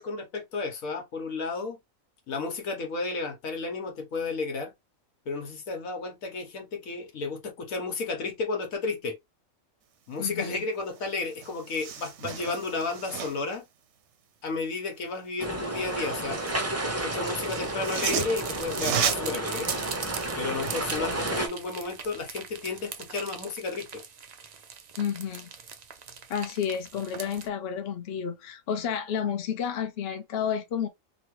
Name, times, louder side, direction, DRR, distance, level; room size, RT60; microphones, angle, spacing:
voice 1, 0.0-1.8 2.3-4.7 5.2-9.2 10.1-13.6 14.4-16.4 17.0-19.7 20.4-24.0, left 3 dB, 80° left, 1.4 m, -32 dB
voice 2, 10.2-10.6 25.0-25.5 26.3-30.9, left 8 dB, 55° left, 0.8 m, -31 dB
sound 1, 10.9-11.0 11.3-13.6 15.7-16.8 17.6-20.9 21.3-21.4, right 8 dB, 65° right, 0.8 m, -33 dB
sound 2, 15.4-21.5, right 1 dB, 20° right, 0.4 m, -32 dB
sound 3, 16.8-27.5, right 6 dB, 90° right, 0.3 m, -41 dB
3.0 x 2.7 x 2.9 m
omnidirectional pair, 1.4 m